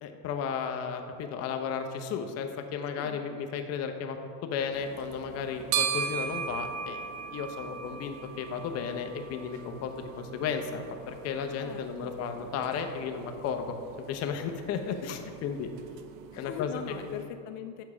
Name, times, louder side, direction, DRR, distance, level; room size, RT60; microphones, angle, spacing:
voice 1, 0.0-7.0 7.3-13.7 14.1-15.7 16.4-16.7 17.1-17.2, left 6 dB, 40° left, 5 dB, 0.7 m, -34 dB
sound 1, 4.7-17.2, right 8 dB, 80° right, 0.7 m, -39 dB
voice 2, 11.6-12.1 16.3-17.8, left 9 dB, 75° left, 8 dB, 0.5 m, -41 dB
7.0 x 4.5 x 4.9 m, 2.3 s
supercardioid pair, 120°, 39 cm